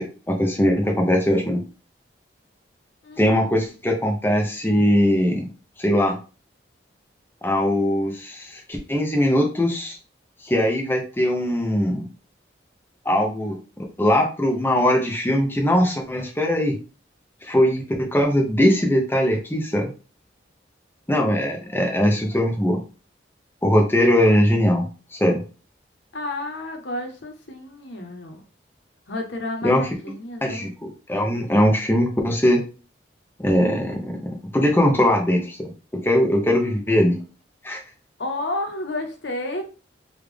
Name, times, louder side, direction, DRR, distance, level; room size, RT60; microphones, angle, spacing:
voice 1, 0.0-1.6 3.2-5.5 5.8-6.2 7.4-10.0 10.4-12.1 13.0-13.6 14.0-16.8 17.4-19.9 21.1-22.8 23.6-24.9 25.2-25.4 29.6-29.9 30.4-30.7 31.1-32.6 33.4-35.7 36.0-37.2 37.6-37.8, equal, 10° left, 1 dB, 0.6 m, -20 dB
voice 2, 21.3-21.7 26.1-28.4 29.1-30.7 38.2-39.6, left 2 dB, 70° left, 4 dB, 0.8 m, -31 dB
3.5 x 2.3 x 3.3 m, 0.34 s
head